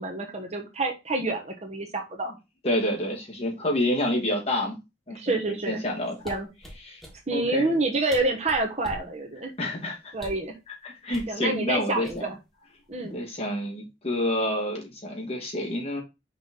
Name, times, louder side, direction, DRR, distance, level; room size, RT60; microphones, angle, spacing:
voice 1, 0.0-2.3 5.1-5.8 6.2-6.5 7.3-9.5 10.1-10.5 11.3-12.3 12.9-13.2, right 2 dB, 35° right, 3 dB, 1.1 m, -28 dB
voice 2, 2.6-4.8 5.1-6.2 6.8-7.0 7.3-7.7 9.6-10.0 10.8-12.3 13.1-16.0, left 1 dB, 30° left, -2 dB, 2.2 m, -28 dB
sound 1, 6.2-7.2 7.8-9.1 10.1-10.5 11.1-11.3 12.0-12.5 12.9-13.1, equal, ahead, 1.4 m, -42 dB
5.8 x 4.6 x 3.6 m, 0.24 s
head